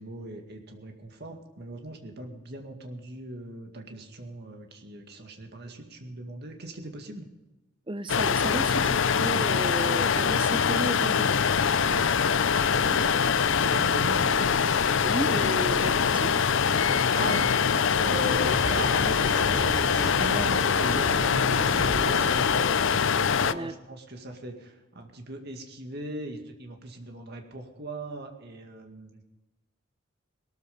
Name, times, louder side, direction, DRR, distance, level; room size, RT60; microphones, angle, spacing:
voice 1, 0.0-7.3 13.7-14.2 16.9-29.2, right 1 dB, 50° right, 4 dB, 2.1 m, -39 dB
voice 2, 7.9-11.5 15.0-16.4 23.5-23.7, right 1 dB, 25° right, 12 dB, 0.7 m, -34 dB
sound 1, 8.1-23.5, left 6 dB, 60° left, 0.5 m, -24 dB
sound 2, 11.4-22.4, right 1 dB, 85° right, 5.5 m, -37 dB
18.5 x 13.5 x 5.3 m, 1.1 s
head